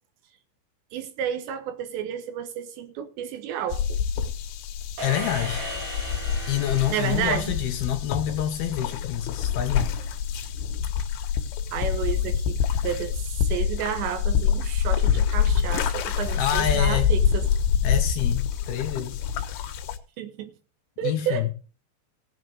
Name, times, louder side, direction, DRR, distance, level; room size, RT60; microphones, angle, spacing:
voice 1, 0.9-4.0 6.9-7.5 11.7-12.6 12.8-17.4 20.2-20.5 21.0-21.5, right 9 dB, 80° right, 3.2 m, -31 dB
sound 1, 3.7-20.0, left 8 dB, 90° left, 3.7 m, -26 dB
voice 2, 5.0-5.6 6.5-10.0 16.4-17.1 17.8-19.2 21.0-21.5, left 11 dB, 70° left, 2.5 m, -27 dB
sound 2, 5.0-8.1, right 1 dB, 55° right, 6.2 m, -37 dB
19.0 x 7.9 x 3.5 m
omnidirectional pair, 5.3 m